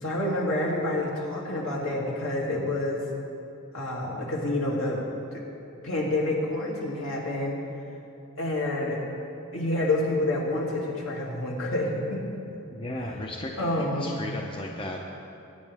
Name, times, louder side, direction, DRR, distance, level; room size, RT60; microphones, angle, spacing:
voice 1, 0.0-3.0 3.7-5.0 5.3-5.4 5.8-7.6 8.4-9.0 9.5-12.4 13.6-14.2, left 1 dB, 65° left, -3 dB, 2.6 m, -28 dB
voice 2, 12.7-15.0, left 1 dB, 25° left, 0 dB, 0.8 m, -35 dB
21.0 x 9.8 x 3.5 m, 2.7 s
head